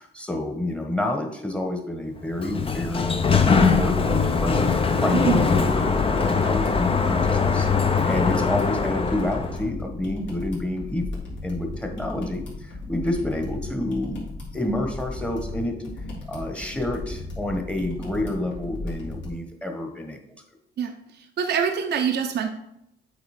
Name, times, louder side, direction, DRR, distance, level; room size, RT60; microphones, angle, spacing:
voice 1, 0.0-14.2 14.5-15.8 16.3-20.2, left 1 dB, 5° left, 3 dB, 1.2 m, -29 dB
Sliding door, 2.2-9.6, left 5 dB, 30° left, 0.7 m, -22 dB
sound 1, 3.9-19.3, left 2 dB, 65° left, 2.6 m, -36 dB
voice 2, 5.1-5.4 20.8-22.5, right 7 dB, 55° right, 5 dB, 0.7 m, -25 dB
8.2 x 4.2 x 4.3 m, 0.80 s
cardioid pair, 90°, 20 cm